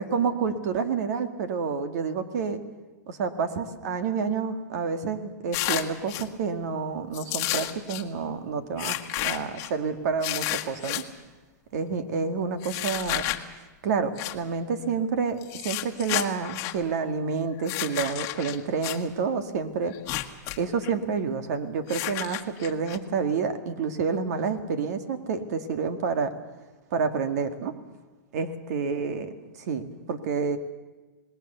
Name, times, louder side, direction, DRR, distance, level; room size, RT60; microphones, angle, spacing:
voice 1, 0.0-2.6 3.1-9.0 9.2-11.0 11.7-13.2 13.8-20.0 20.6-26.3 26.9-27.7 28.3-29.3 29.6-30.6, right 5 dB, 60° right, 9 dB, 2.1 m, -29 dB
sound 1, 5.5-6.3 7.1-8.0 8.8-9.7 10.2-11.0 12.6-13.4 14.2-14.3 15.4-16.8 17.6-19.0 19.9-20.6 20.8-20.9 21.9-23.0, left 16 dB, 35° left, 1.4 m, -31 dB
26.5 x 20.0 x 6.9 m, 1.2 s
supercardioid pair, 155°, 10 cm